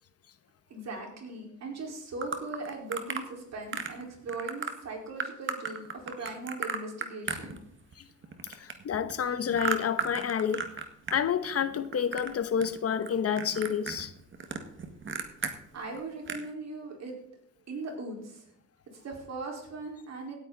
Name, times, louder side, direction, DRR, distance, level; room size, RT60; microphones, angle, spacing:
voice 1, 0.7-7.6 15.7-17.1 17.7-18.5 18.9-20.4, right 3 dB, 60° right, 4.4 m, -39 dB
sound 1, 2.2-3.3 3.7-4.0 4.3-4.7 5.2-8.0 8.2-11.2 11.4-12.3 12.6-13.1 13.4-15.5 15.9-16.0 16.3-16.5, right 5 dB, 40° right, 1.8 m, -34 dB
voice 2, 8.5-10.7 11.1-14.1, left 8 dB, 50° left, 1.0 m, -29 dB
17.0 x 9.4 x 4.0 m
cardioid pair, 90°, 30 cm